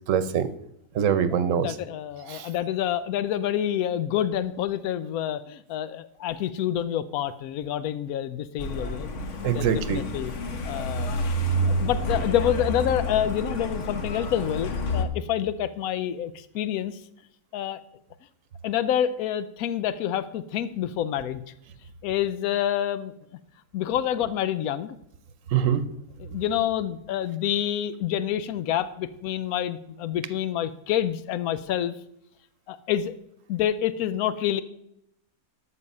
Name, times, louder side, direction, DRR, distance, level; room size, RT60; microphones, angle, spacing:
voice 1, 0.1-0.5 0.9-1.7 2.3-2.5 9.4-10.0 25.5-25.9, right 8 dB, 70° right, 13 dB, 1.1 m, -23 dB
voice 2, 1.3-9.1 9.5-10.3 10.6-11.3 11.6-17.0 17.5-17.8 18.6-21.4 22.0-23.1 23.7-25.0 26.2-31.9 32.7-33.1 33.5-34.6, left 10 dB, 90° left, 14 dB, 1.1 m, -27 dB
Truck, 8.6-15.1, equal, 60° left, 1.4 m, -29 dB
12.5 x 6.6 x 5.4 m, 0.78 s
omnidirectional pair, 1.5 m